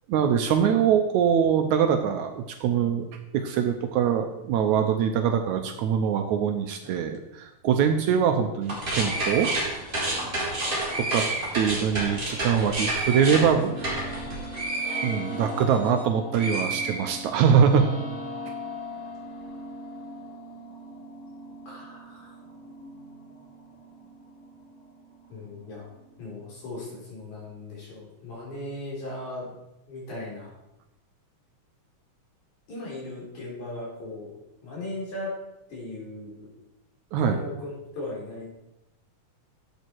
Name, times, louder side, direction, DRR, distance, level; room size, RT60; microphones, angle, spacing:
voice 1, 0.1-3.1 3.3-9.5 11.0-11.3 11.5-14.1 15.0-17.9 37.1-37.4, right 7 dB, 75° right, 6 dB, 1.9 m, -23 dB
sound 1, 8.6-16.0 16.3-17.5, right 2 dB, 15° right, 3.4 m, -30 dB
sound 2, 13.0-26.9, left 1 dB, 80° left, 5.2 m, -40 dB
voice 2, 18.2-18.5 21.7-22.3 25.3-25.9 26.2-29.6 29.9-30.5 32.7-34.3 34.6-35.3 35.7-36.5 37.2-38.5, left 2 dB, 65° left, -4 dB, 5.0 m, -38 dB
11.0 x 8.1 x 4.6 m, 0.90 s
omnidirectional pair, 3.7 m